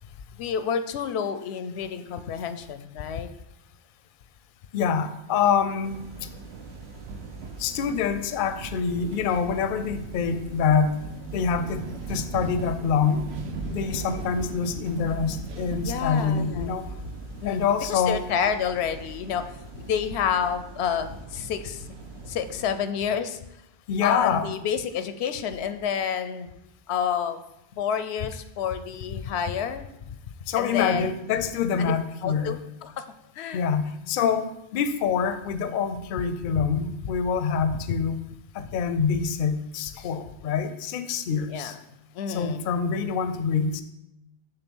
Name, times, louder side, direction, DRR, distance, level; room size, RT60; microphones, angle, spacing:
voice 1, 0.3-3.3 15.8-16.7 17.4-17.6 17.9-19.4 19.7-23.4 24.0-26.5 26.9-27.4 27.7-29.9 30.6-31.1 31.8-31.9 32.2-32.9 33.4-33.7 41.5-41.8 42.1-42.7, left 7 dB, 90° left, 10 dB, 0.8 m, -29 dB
voice 2, 4.7-6.0 7.6-11.0 11.3-13.3 13.7-16.9 17.4-18.2 23.9-24.5 30.5-32.6 33.5-38.2 38.5-41.7 42.3-43.8, left 6 dB, 60° left, 11 dB, 0.6 m, -26 dB
sound 1, 5.8-22.6, right 4 dB, 90° right, 1.0 m, -39 dB
7.0 x 3.4 x 6.0 m, 0.86 s
omnidirectional pair, 1.1 m